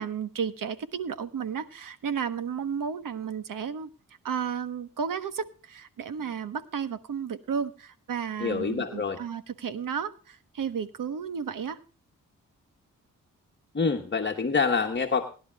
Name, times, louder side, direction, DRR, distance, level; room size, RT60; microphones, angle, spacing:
voice 1, 0.0-3.9 4.2-11.8, right 7 dB, 70° right, 13 dB, 1.2 m, -33 dB
voice 2, 8.4-9.2 13.7-15.3, left 5 dB, 35° left, 3 dB, 1.2 m, -26 dB
20.5 x 11.0 x 2.3 m, 0.36 s
cardioid pair, 65°, 33 cm